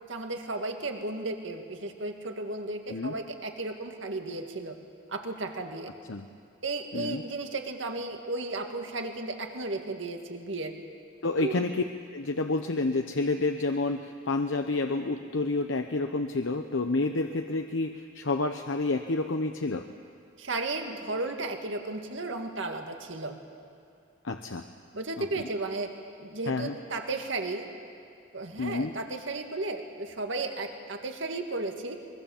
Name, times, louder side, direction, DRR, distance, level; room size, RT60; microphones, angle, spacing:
voice 1, 0.1-4.8 5.1-5.9 6.6-10.7 11.4-11.7 20.4-23.4 24.9-25.9 26.2-27.7 28.3-32.0, right 2 dB, 75° right, 4 dB, 2.0 m, -34 dB
voice 2, 6.9-7.2 11.2-11.8 12.1-19.9 24.2-24.6 25.2-25.3 26.5-26.7 28.6-28.9, left 3 dB, 80° left, 5 dB, 0.9 m, -29 dB
23.5 x 22.0 x 7.2 m, 2.3 s
head